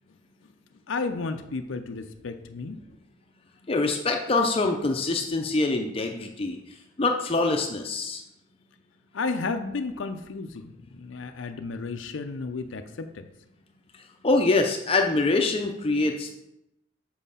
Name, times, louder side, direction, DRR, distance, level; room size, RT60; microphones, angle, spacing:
voice 1, 0.9-2.8 9.1-13.3, left 4 dB, 90° left, 7 dB, 0.5 m, -33 dB
voice 2, 3.7-6.6 7.0-8.2 14.2-16.3, left 3 dB, 30° left, 4 dB, 0.6 m, -24 dB
7.3 x 4.5 x 5.5 m, 0.86 s
head